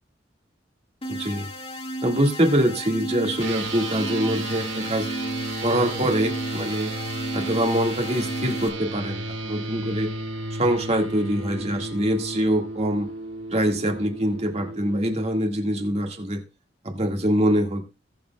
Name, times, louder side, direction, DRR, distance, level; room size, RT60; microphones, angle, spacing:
sound 1, 1.0-8.7, right 1 dB, 30° left, 2.1 m, -34 dB
voice 1, 1.1-1.5 2.0-5.1 5.6-6.9 7.3-10.1 10.5-13.1 13.5-16.4 16.8-17.8, right 1 dB, 35° right, 3 dB, 2.0 m, -24 dB
sound 2, 3.4-15.3, right 2 dB, 85° right, 1.8 m, -33 dB
21.0 x 7.0 x 2.3 m, 0.27 s
head